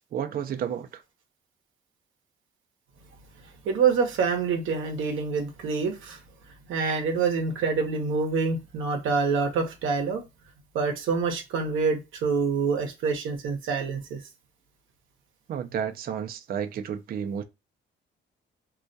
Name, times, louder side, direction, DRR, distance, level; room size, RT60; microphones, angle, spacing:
voice 1, 0.1-1.0 15.5-17.4, right 8 dB, 50° right, 0.4 m, -31 dB
voice 2, 3.7-6.2 6.7-10.2 10.7-14.2, right 5 dB, 80° right, 0.7 m, -26 dB
2.3 x 2.1 x 2.5 m
cardioid pair, 90°, 20 cm